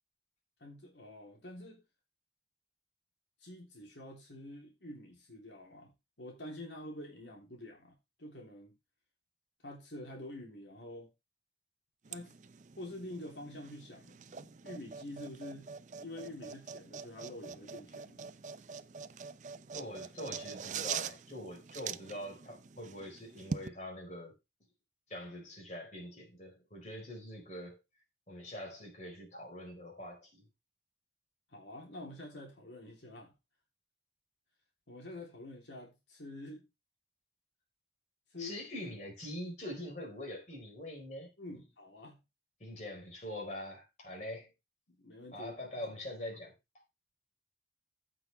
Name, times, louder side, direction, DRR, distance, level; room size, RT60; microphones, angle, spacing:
voice 1, 0.6-1.8 3.4-5.9 6.2-8.7 9.6-11.1 12.1-12.4 12.8-15.7 16.0-18.3 31.5-33.3 34.9-36.6 38.3-38.7 41.4-42.2 44.9-45.5, left 1 dB, 85° left, 3.4 m, -47 dB
Receipt Printing, 12.0-23.7, right 6 dB, 45° right, 0.5 m, -44 dB
voice 2, 19.7-24.3 25.1-27.8 28.3-30.4 38.4-41.3 42.6-44.5 45.3-46.5, left 1 dB, 40° left, 4.5 m, -44 dB
15.0 x 6.2 x 3.4 m
head